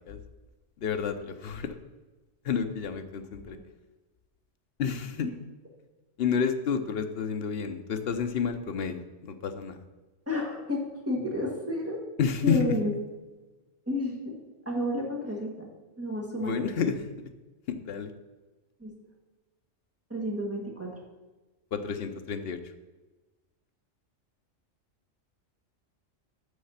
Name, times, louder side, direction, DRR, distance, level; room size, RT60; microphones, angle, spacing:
voice 1, 0.8-1.7 2.4-3.6 4.8-5.3 6.2-9.8 12.2-12.8 16.4-17.0 17.7-18.1 21.7-22.6, left 6 dB, 60° left, 8 dB, 0.8 m, -30 dB
voice 2, 10.3-12.0 12.4-12.9 13.9-14.3 14.6-15.7 16.0-16.9 18.8-18.9 20.1-20.9, left 1 dB, 10° right, -3 dB, 1.6 m, -31 dB
6.5 x 6.5 x 5.6 m, 1.2 s
omnidirectional pair, 1.3 m